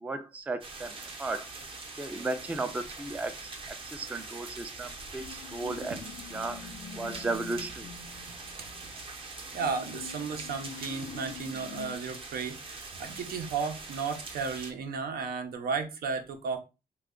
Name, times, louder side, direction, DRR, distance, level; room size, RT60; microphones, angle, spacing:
voice 1, 0.0-0.9 1.2-1.5 2.0-6.0 6.3-6.7 7.0-7.9, right 3 dB, 10° right, 0.3 m, -35 dB
sound 1, 0.6-14.7, right 3 dB, 35° right, 0.7 m, -43 dB
sound 2, 5.2-9.2 9.5-12.0, left 7 dB, 85° left, 0.4 m, -46 dB
voice 2, 9.2-16.6, right 5 dB, 90° right, 0.7 m, -34 dB
3.2 x 2.3 x 3.6 m
wide cardioid pair, 155°, 15 cm